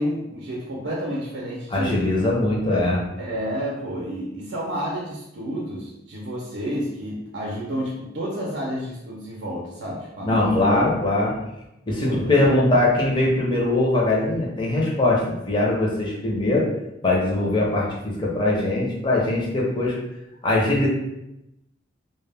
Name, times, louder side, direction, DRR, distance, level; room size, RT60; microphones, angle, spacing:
voice 1, 0.0-2.1 3.2-10.8 12.0-12.3, equal, 65° right, -4 dB, 0.5 m, -30 dB
voice 2, 1.7-3.0 10.2-11.4 11.9-16.7 17.0-20.0 20.4-20.9, left 2 dB, 25° left, -4 dB, 0.6 m, -21 dB
2.1 x 2.1 x 3.3 m, 0.88 s
head